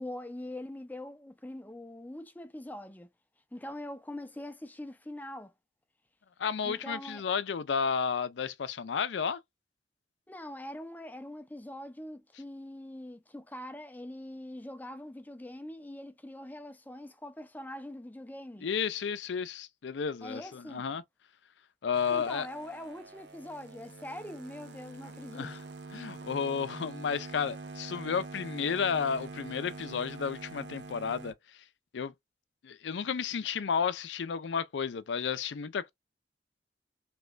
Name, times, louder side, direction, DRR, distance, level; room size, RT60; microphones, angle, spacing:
voice 1, 0.0-3.1 3.5-5.5 6.6-7.2 10.3-18.7 20.2-20.9 22.1-25.5, left 1 dB, 10° left, 0.5 m, -43 dB
voice 2, 6.4-9.4 18.6-21.0 21.8-22.5 25.3-25.6 25.9-31.3 31.9-32.1 32.6-35.9, left 6 dB, 80° left, 0.5 m, -32 dB
sound 1, 21.9-31.3, right 3 dB, 70° right, 0.7 m, -45 dB
3.3 x 2.9 x 2.4 m
head